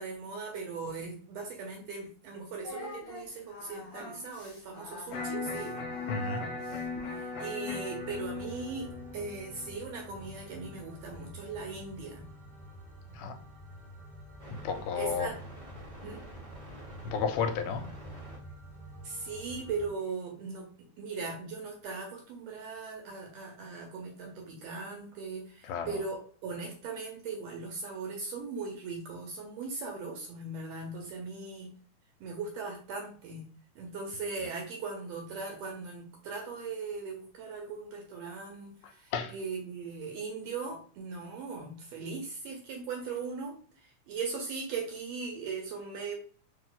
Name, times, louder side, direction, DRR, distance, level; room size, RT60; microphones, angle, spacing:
voice 1, 0.0-5.8 7.1-12.3 15.0-15.3 16.0-16.2 19.0-20.7 21.0-31.7 32.2-46.1, right 4 dB, 70° right, 1 dB, 1.6 m, -39 dB
Singing, 2.6-7.7, left 2 dB, 45° left, 1.8 m, -46 dB
Electric guitar, 5.1-11.2, left 4 dB, 70° left, 1.9 m, -39 dB
voice 2, 6.1-6.5 13.1-13.4 14.5-15.3 17.0-17.9 25.6-26.0 38.8-39.4, left 6 dB, 85° left, 8 dB, 2.1 m, -33 dB
sound 1, 8.0-19.9, equal, 40° right, 0.6 m, -47 dB
4.6 x 2.7 x 3.8 m, 0.44 s
omnidirectional pair, 3.6 m